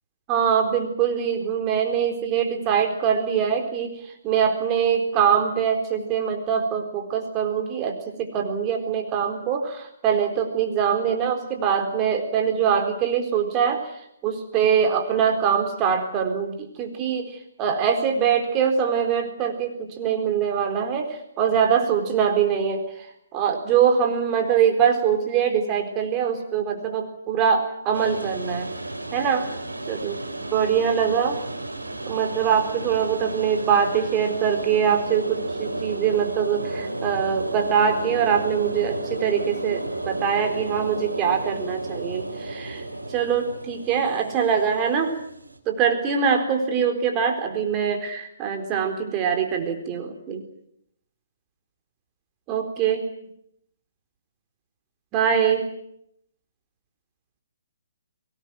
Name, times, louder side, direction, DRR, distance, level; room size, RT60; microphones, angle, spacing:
voice 1, 0.3-13.9 14.2-22.8 23.3-28.7 29.1-29.5 29.9-30.2 30.5-31.4 32.1-42.8 43.1-45.1 45.7-50.5 52.5-53.0 55.1-55.7, right 7 dB, 25° right, 4 dB, 4.1 m, -23 dB
sound 1, 27.9-45.6, right 2 dB, 80° right, 4.1 m, -33 dB
23.5 x 19.0 x 9.2 m, 0.76 s
figure-of-eight pair, 130°, 0 cm